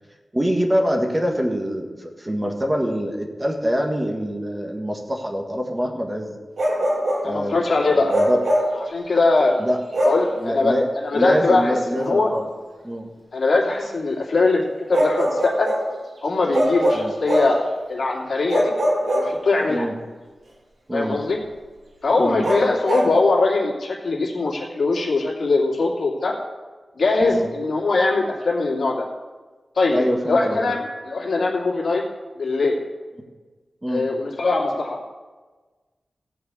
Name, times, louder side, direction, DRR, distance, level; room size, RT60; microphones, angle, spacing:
voice 1, 0.3-6.3 7.2-8.4 9.6-9.8 10.4-10.9 11.1-12.5 12.8-13.1 16.9-17.1 19.7-19.9 20.9-21.2 22.2-22.4 27.2-27.5 29.9-30.7 33.8-34.1, equal, 20° right, 2 dB, 1.6 m, -24 dB
Bark, 6.6-7.3 8.1-8.8 9.9-10.3 12.0-12.1 14.9-15.9 16.5-17.6 18.5-19.7 22.4-23.1, equal, 80° right, 2.9 m, -22 dB
voice 2, 7.2-8.2 8.9-9.5 10.0-10.7 11.0-11.8 12.0-12.3 13.3-15.7 16.2-17.6 17.9-18.7 19.1-19.9 20.9-21.4 22.0-26.4 27.0-29.0 29.8-32.0 32.4-32.8 33.9-35.1, left 3 dB, 70° left, -2 dB, 2.5 m, -21 dB
14.5 x 4.8 x 8.1 m, 1.3 s
wide cardioid pair, 80°, 0 cm